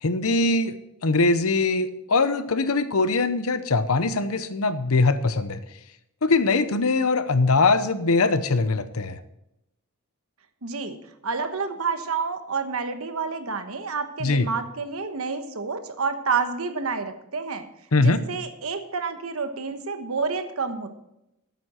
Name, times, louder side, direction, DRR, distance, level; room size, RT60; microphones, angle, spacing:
voice 1, 0.0-0.8 1.0-5.6 6.2-9.2 14.2-14.5 17.9-18.2, left 3 dB, 75° left, 12 dB, 0.8 m, -22 dB
voice 2, 10.6-11.0 11.2-17.7 18.0-20.9, right 5 dB, 70° right, 8 dB, 1.2 m, -29 dB
13.0 x 9.3 x 4.3 m, 0.86 s
head